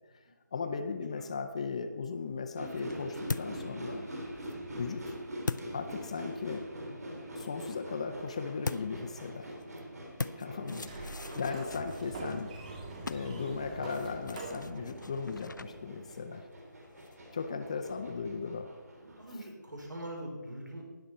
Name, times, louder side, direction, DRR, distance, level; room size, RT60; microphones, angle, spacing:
voice 1, 0.5-4.1 4.8-5.1 5.7-6.7 7.4-9.5 10.4-12.5 13.1-16.4 17.3-18.7 19.3-19.4, left 5 dB, 20° left, 7 dB, 0.4 m, -37 dB
sound 1, 2.2-6.6 8.6-17.5, left 3 dB, 70° left, 0.5 m, -43 dB
sound 2, 2.6-19.4, equal, 55° right, 3.4 m, -44 dB
voice 2, 10.5-11.0 19.0-20.8, right 1 dB, 70° right, 0 dB, 4.4 m, -43 dB
Sliding door, 10.7-16.3, right 3 dB, 25° right, 1.5 m, -45 dB
19.5 x 6.7 x 4.2 m, 1.3 s
figure-of-eight pair, 160°, 10 cm